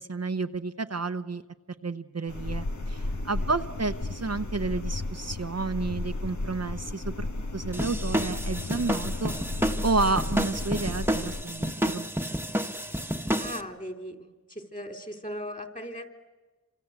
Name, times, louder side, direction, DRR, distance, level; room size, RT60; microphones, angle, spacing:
voice 1, 0.0-1.4 1.8-9.3 9.8-12.1, right 3 dB, 50° right, 8 dB, 0.9 m, -31 dB
sound 1, 2.3-11.4, left 2 dB, 60° left, 1.7 m, -34 dB
sound 2, 7.7-13.6, equal, 5° right, 1.4 m, -30 dB
voice 2, 13.3-16.1, equal, 25° left, 6 dB, 3.7 m, -38 dB
28.0 x 26.0 x 8.2 m, 1.2 s
wide cardioid pair, 55°, 32 cm